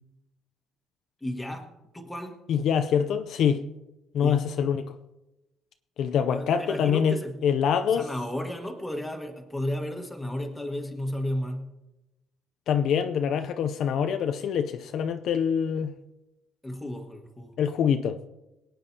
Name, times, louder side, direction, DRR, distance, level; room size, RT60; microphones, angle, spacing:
voice 1, 1.2-1.7 1.9-2.4 4.2-4.5 6.3-7.4 7.9-11.7 16.6-17.5, left 1 dB, 5° left, 1.5 m, -33 dB
voice 2, 2.5-3.6 4.1-4.9 6.0-8.1 12.7-15.9 17.6-18.3, left 7 dB, 60° left, 0.5 m, -25 dB
23.5 x 9.0 x 2.8 m
cardioid pair, 150°, 0 cm